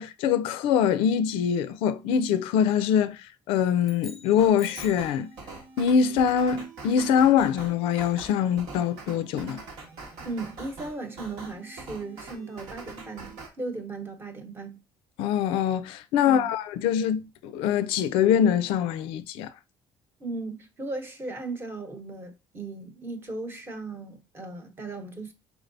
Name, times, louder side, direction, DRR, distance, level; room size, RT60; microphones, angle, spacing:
voice 1, 0.0-5.3 5.8-9.6 15.2-19.5, left 8 dB, 90° left, 0.4 m, -24 dB
sound 1, 3.8-5.2, left 3 dB, 5° left, 1.0 m, -45 dB
sound 2, 4.4-13.5, right 3 dB, 80° right, 1.4 m, -44 dB
voice 2, 10.2-14.8 16.2-16.5 20.2-25.3, right 3 dB, 25° right, 0.9 m, -37 dB
4.7 x 3.3 x 2.5 m
cardioid pair, 120°, 9 cm